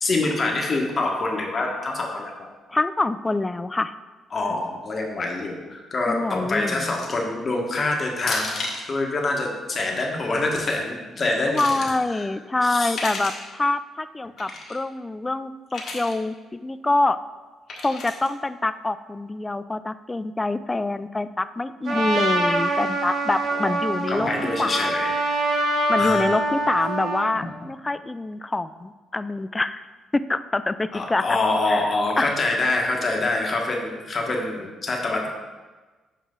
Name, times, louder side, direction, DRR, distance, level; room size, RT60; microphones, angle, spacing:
voice 1, 0.0-2.3 4.3-8.6 8.9-11.8 12.1-12.2 12.6-13.0 21.9-22.1 23.5-23.7 24.1-25.2 26.0-26.4 30.9-35.3, left 2 dB, 40° left, 0 dB, 1.4 m, -25 dB
voice 2, 2.7-3.9 6.1-6.9 11.5-17.2 17.8-24.3 24.6-24.9 25.9-29.8 30.1-31.2 31.7-32.4, left 2 dB, 20° left, 12 dB, 0.3 m, -26 dB
sound 1, 6.9-7.3 8.2-8.9 10.2-10.6 11.2-12.0 12.8-13.5 14.4-14.8 15.7-16.2 17.7-18.3, left 3 dB, 60° left, 1.5 m, -33 dB
Trumpet, 21.9-27.3, right 1 dB, 60° right, 1.3 m, -24 dB
7.8 x 5.0 x 3.8 m, 1.3 s
cardioid pair, 90°, 0 cm